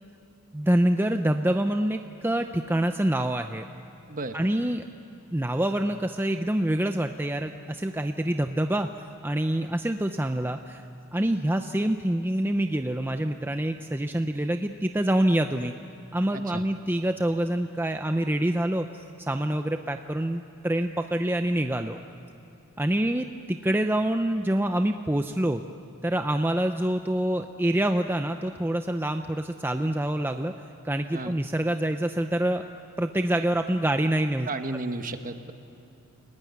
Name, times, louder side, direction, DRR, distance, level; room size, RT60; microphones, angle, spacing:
voice 1, 0.5-3.7 4.3-4.8 5.3-8.9 9.2-10.8 11.1-15.7 16.1-22.0 22.8-25.6 26.0-30.5 30.8-32.6 33.0-34.5, right 1 dB, 10° right, 6 dB, 0.6 m, -26 dB
voice 2, 16.3-16.6 31.1-31.4 34.5-35.5, right 2 dB, 40° right, 8 dB, 1.3 m, -33 dB
29.5 x 18.5 x 9.5 m, 2.9 s
head